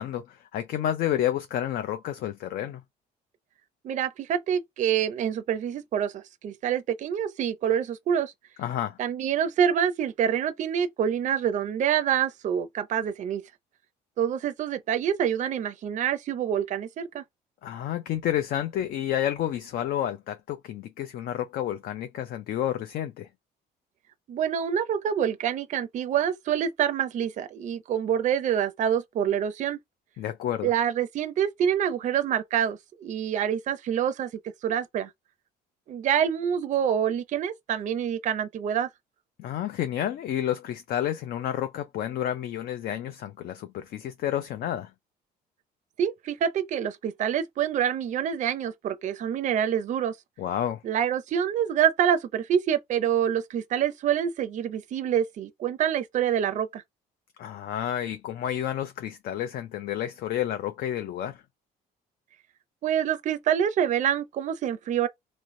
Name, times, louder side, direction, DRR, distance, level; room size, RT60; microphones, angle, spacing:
voice 1, 0.0-2.8 8.6-9.0 17.6-23.3 30.2-30.7 39.4-44.9 50.4-50.8 57.4-61.4, left 11 dB, 60° left, 0.5 m, -30 dB
voice 2, 3.8-8.3 9.0-13.4 14.2-17.2 24.3-29.8 30.6-34.3 34.6-35.1 35.9-38.9 46.0-50.2 50.8-56.8 62.8-65.1, right 9 dB, 45° right, 0.5 m, -26 dB
3.1 x 2.9 x 2.6 m
cardioid pair, 110°, 17 cm